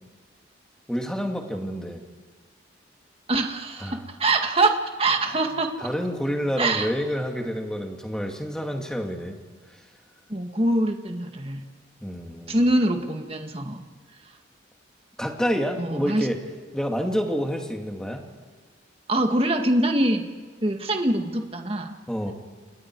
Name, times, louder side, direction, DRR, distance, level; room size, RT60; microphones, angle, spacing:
voice 1, 0.9-2.0 3.8-4.0 5.8-9.4 12.0-12.6 15.2-16.4 16.7-18.2 22.1-22.3, equal, 5° left, 2 dB, 2.5 m, -28 dB
voice 2, 3.3-5.9 6.6-6.9 10.3-11.6 12.5-13.8 15.8-16.3 19.1-20.2 20.6-22.0, right 2 dB, 30° right, 4 dB, 2.0 m, -24 dB
29.5 x 28.0 x 4.8 m, 1.5 s
head